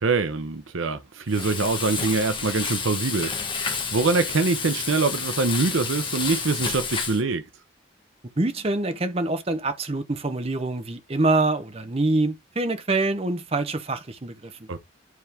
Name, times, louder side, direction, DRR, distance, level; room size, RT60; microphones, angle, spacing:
voice 1, 0.0-3.3 3.9-7.4 14.7-14.8, right 3 dB, 70° right, 0.8 m, -24 dB
Frying (food), 1.3-7.2, left 5 dB, 25° left, 1.1 m, -30 dB
voice 2, 8.4-14.7, right 2 dB, 30° right, 0.7 m, -25 dB
9.4 x 3.7 x 3.4 m
head